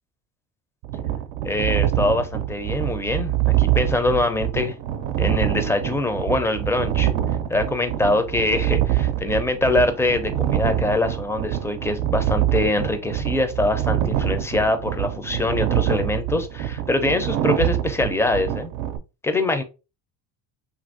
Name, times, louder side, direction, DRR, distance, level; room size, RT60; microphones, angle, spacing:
sound 1, 0.8-19.0, right 12 dB, 80° right, 0.6 m, -25 dB
voice 1, 1.4-3.3 3.6-4.7 5.2-7.1 7.5-18.7 19.2-19.6, left 2 dB, 5° left, 9 dB, 0.4 m, -23 dB
2.8 x 2.6 x 2.5 m, 0.30 s
supercardioid pair, 75°, 48 cm